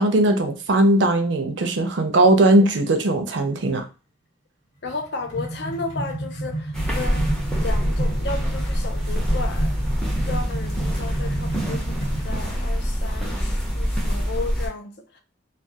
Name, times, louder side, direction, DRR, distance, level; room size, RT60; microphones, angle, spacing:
voice 1, 0.0-3.8, right 1 dB, 70° right, 0.5 m, -19 dB
sound 1, 4.8-12.4, right 2 dB, 90° left, 1.3 m, -31 dB
voice 2, 4.8-7.3 7.6-15.2, left 3 dB, 60° left, 0.5 m, -34 dB
sound 2, 6.7-14.7, equal, 5° left, 0.5 m, -25 dB
2.3 x 2.2 x 2.7 m
head